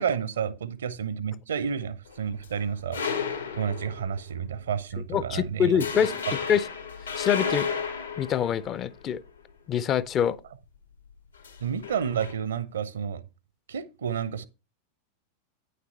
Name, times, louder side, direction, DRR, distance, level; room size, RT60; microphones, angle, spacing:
voice 1, 0.0-3.0 3.5-5.8 11.6-13.2 13.7-14.5, right 7 dB, 65° right, 0.7 m, -30 dB
sound 1, 2.1-4.3 4.7-5.0 5.3-5.5 5.8-9.3 11.4-12.3, left 6 dB, 75° left, 1.7 m, -33 dB
voice 2, 5.1-6.2 6.5-6.6 7.2-7.7 8.2-9.2 9.7-10.4, left 8 dB, 30° left, 0.6 m, -25 dB
9.3 x 6.7 x 4.2 m
figure-of-eight pair, 90°, 0 cm